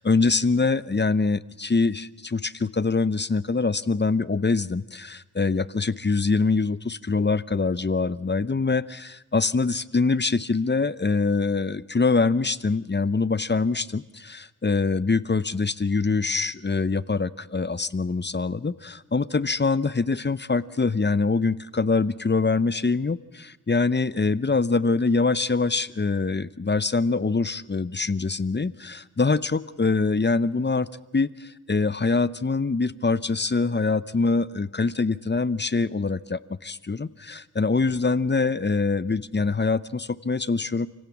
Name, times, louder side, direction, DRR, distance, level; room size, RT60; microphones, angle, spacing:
voice 1, 0.0-30.9 31.1-40.9, left 4 dB, 35° left, 17 dB, 0.8 m, -24 dB
28.5 x 17.0 x 7.2 m, 1.1 s
cardioid pair, 45°, 33 cm